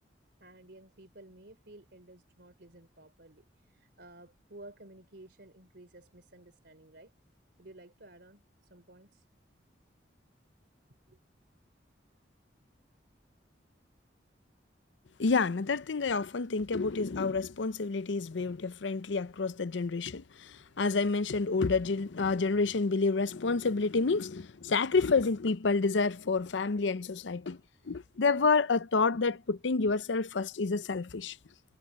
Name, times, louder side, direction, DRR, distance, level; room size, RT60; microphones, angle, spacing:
voice 1, 0.4-7.1 7.6-8.4 8.7-9.2 11.1-11.2, right 1 dB, 65° right, 3.3 m, -53 dB
voice 2, 15.2-27.6 27.9-31.4, left 4 dB, 90° left, 0.6 m, -29 dB
head